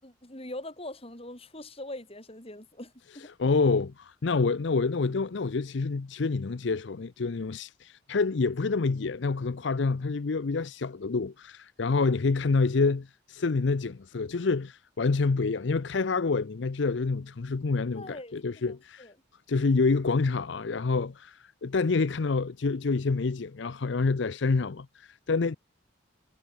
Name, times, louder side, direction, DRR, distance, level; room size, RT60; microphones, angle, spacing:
voice 1, 0.0-3.3 11.9-12.1 17.9-19.1, left 1 dB, 30° left, 4.9 m, -43 dB
voice 2, 3.4-19.1 19.5-25.6, left 4 dB, 65° left, 0.6 m, -27 dB
head